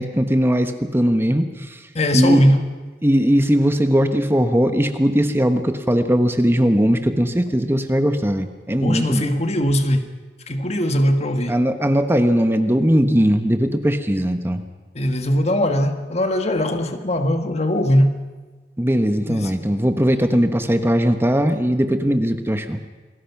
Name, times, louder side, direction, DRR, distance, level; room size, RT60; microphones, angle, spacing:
voice 1, 0.0-1.4 2.1-2.4 3.0-9.3 11.5-14.6 18.8-22.8, equal, 15° right, 7 dB, 1.1 m, -19 dB
voice 2, 1.9-2.7 8.8-10.1 10.5-11.6 14.9-18.2 19.3-19.6, equal, 40° left, 7 dB, 1.6 m, -20 dB
28.5 x 21.0 x 6.0 m, 1.3 s
head